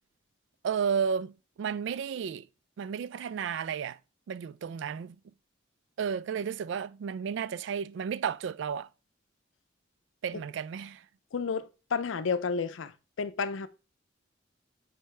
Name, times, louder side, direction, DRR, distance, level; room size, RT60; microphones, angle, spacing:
voice 1, 0.6-2.5 2.8-4.0 4.3-5.2 6.0-8.9 10.2-11.0, right 7 dB, 70° right, 0.3 m, -32 dB
voice 2, 11.3-12.9 13.2-13.7, left 5 dB, 90° left, 0.5 m, -31 dB
7.7 x 4.5 x 3.3 m
head